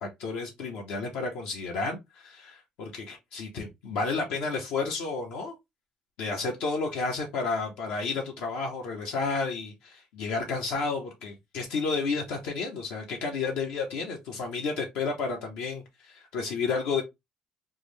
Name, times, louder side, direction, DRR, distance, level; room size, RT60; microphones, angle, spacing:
voice 1, 0.0-5.5 6.2-17.0, left 4 dB, 85° left, 0.8 m, -31 dB
3.6 x 2.1 x 3.1 m
cardioid pair, 115°, 2 cm